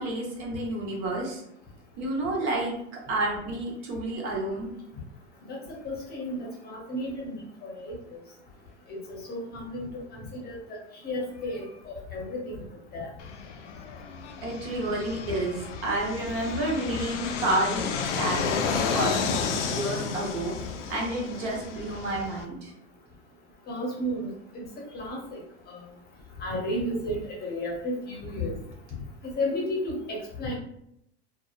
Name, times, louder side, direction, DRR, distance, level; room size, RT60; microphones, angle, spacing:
voice 1, 0.0-1.4 2.0-2.7 3.1-4.7 14.4-17.9 18.2-20.6 20.9-22.7, right 2 dB, 55° right, -2 dB, 1.0 m, -30 dB
voice 2, 5.8-8.0 8.9-10.0 10.3-12.6 12.9-13.1 23.7-24.6 24.9-25.4 25.7-25.8 26.4-28.5 29.2-30.6, left 1 dB, 30° left, -1 dB, 0.7 m, -33 dB
Fixed-wing aircraft airplane, 13.2-22.4, left 6 dB, 80° left, 0.5 m, -32 dB
2.7 x 2.0 x 2.4 m, 0.75 s
hypercardioid pair, 105°, 35 cm